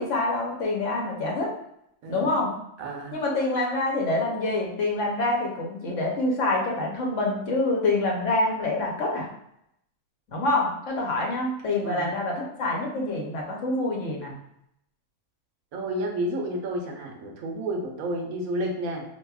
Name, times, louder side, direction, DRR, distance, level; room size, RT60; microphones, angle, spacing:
voice 1, 0.0-1.5 2.1-2.5 3.1-9.3 10.3-14.3, left 2 dB, 60° left, -1 dB, 1.0 m, -26 dB
voice 2, 2.8-3.2 11.8-12.1 15.7-19.0, right 1 dB, 75° right, 2 dB, 1.1 m, -31 dB
4.5 x 2.6 x 2.3 m, 0.77 s
omnidirectional pair, 1.5 m